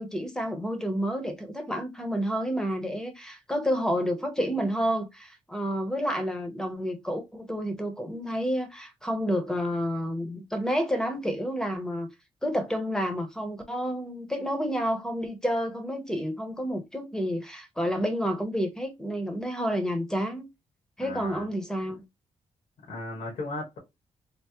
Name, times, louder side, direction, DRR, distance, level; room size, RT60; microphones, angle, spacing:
voice 1, 0.0-12.1 12.4-20.5 21.0-22.0, equal, 5° left, 0.6 m, -29 dB
voice 2, 21.0-21.5 22.9-23.8, left 2 dB, 80° left, 1.3 m, -36 dB
3.3 x 2.0 x 2.8 m
cardioid pair, 130°, 12 cm